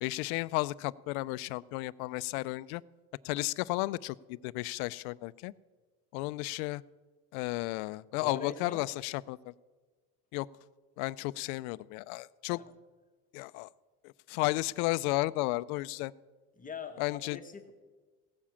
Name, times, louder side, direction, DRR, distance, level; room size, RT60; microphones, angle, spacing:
voice 1, 0.0-2.8 3.2-5.5 6.1-6.8 7.3-9.5 10.3-10.5 11.0-12.6 13.3-13.7 14.0-16.1 17.0-17.4, left 20 dB, 65° left, 18 dB, 0.5 m, -33 dB
voice 2, 8.2-8.8 12.5-12.6 16.6-17.7, left 5 dB, 15° left, 5 dB, 1.0 m, -42 dB
16.5 x 7.4 x 7.1 m, 1.4 s
supercardioid pair, 125°, 46 cm